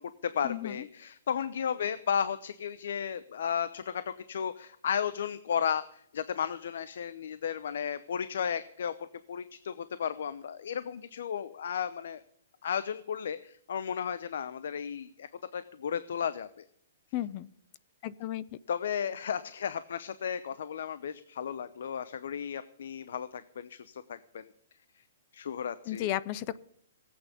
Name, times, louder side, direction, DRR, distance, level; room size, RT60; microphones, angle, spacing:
voice 1, 0.0-8.9 9.3-12.2 12.6-16.6 18.7-24.5 25.3-26.1, left 8 dB, 65° left, 14 dB, 0.8 m, -34 dB
voice 2, 17.1-17.5 18.0-18.4 25.9-26.6, left 13 dB, 30° left, 18 dB, 0.5 m, -33 dB
17.0 x 8.7 x 6.9 m, 0.68 s
hypercardioid pair, 170°, 0 cm